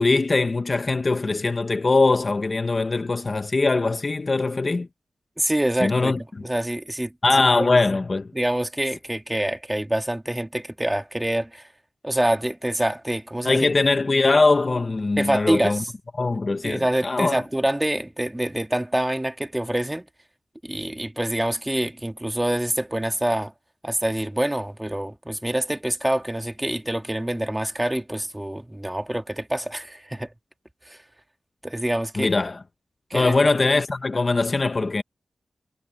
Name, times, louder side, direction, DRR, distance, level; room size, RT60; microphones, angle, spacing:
voice 1, 0.0-4.9 5.8-6.2 7.2-8.3 13.4-15.8 16.2-17.4 32.2-32.6 33.1-35.0, left 3 dB, 35° left, 0.7 m, -21 dB
voice 2, 5.4-6.1 6.4-7.1 7.6-7.7 8.3-11.7 12.0-13.7 15.2-15.9 16.6-20.1 20.6-23.5 23.8-30.3 30.9-31.0 31.6-32.3 33.1-33.4, right 1 dB, 10° right, 2.0 m, -26 dB
wide cardioid pair, 125°, 0 cm